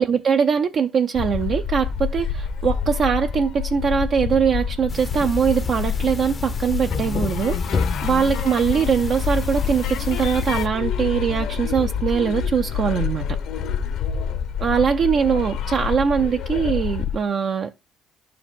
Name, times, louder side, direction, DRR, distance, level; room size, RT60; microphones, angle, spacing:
voice 1, 0.0-13.4 14.6-17.8, right 7 dB, 50° right, 0.5 m, -22 dB
sound 1, 1.1-17.2, left 6 dB, 70° left, 0.9 m, -27 dB
sound 2, 4.9-10.7, left 5 dB, 35° left, 0.6 m, -30 dB
sound 3, 6.9-9.1 9.3-9.5 9.8-11.5, left 7 dB, 90° left, 1.2 m, -34 dB
11.0 x 4.8 x 3.5 m
cardioid pair, 90°, 0 cm